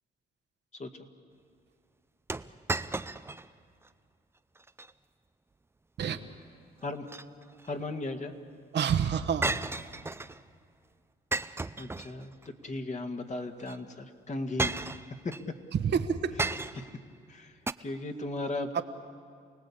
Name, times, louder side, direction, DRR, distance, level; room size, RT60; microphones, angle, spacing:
sound 1, 2.3-3.5 3.8-3.9 4.6-4.9 6.8-7.7 9.4-10.4 11.3-12.5 13.6-13.8 14.6-15.4 16.4-17.0 17.7-17.8, right 3 dB, 10° right, 0.5 m, -34 dB
voice 1, 7.6-8.3 11.8-14.7 15.2-15.3 16.8-16.9 17.3-17.5 17.8-18.8, left 2 dB, 35° left, 5 dB, 1.9 m, -36 dB
voice 2, 8.7-9.6 15.7-16.4 18.7-18.8, right 7 dB, 60° right, 7 dB, 1.3 m, -28 dB
28.0 x 18.5 x 8.6 m, 2.2 s
cardioid pair, 90°, 20 cm